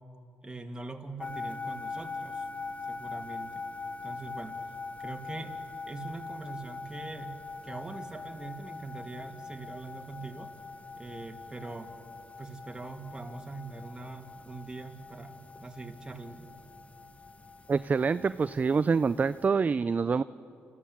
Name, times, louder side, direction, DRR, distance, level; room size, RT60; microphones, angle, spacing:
voice 1, 0.4-2.5 2.9-3.6 4.0-4.6 5.0-5.6 5.9-7.4 7.6-10.5 10.9-11.9 12.4-16.5, right 3 dB, 20° right, 3 dB, 2.3 m, -42 dB
sound 1, 1.2-19.5, left 4 dB, 30° left, 0.8 m, -42 dB
voice 2, 17.7-20.2, right 5 dB, 35° right, 14 dB, 0.4 m, -26 dB
28.5 x 14.0 x 8.5 m, 2.9 s
supercardioid pair, 60°, 5 cm